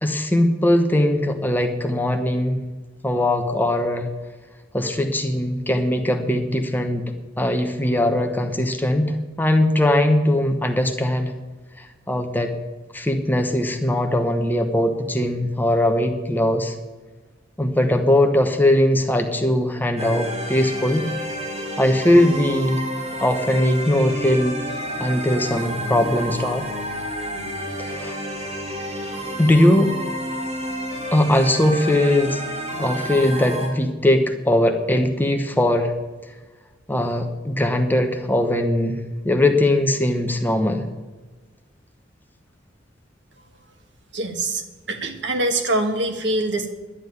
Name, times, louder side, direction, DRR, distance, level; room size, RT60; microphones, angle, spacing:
voice 1, 0.0-2.6 3.0-4.1 4.7-11.3 11.8-12.5 12.9-16.7 17.6-21.1 21.8-22.8 23.2-24.6 25.0-26.6 27.8-28.2 29.4-29.9 31.1-32.4 32.8-35.9 36.9-40.8, left 1 dB, 10° left, 5 dB, 0.9 m, -20 dB
sound 1, 20.0-33.7, equal, 35° right, 3.8 m, -30 dB
voice 2, 44.1-46.7, right 2 dB, 65° right, 5 dB, 1.6 m, -24 dB
11.5 x 7.7 x 9.3 m, 1.3 s
head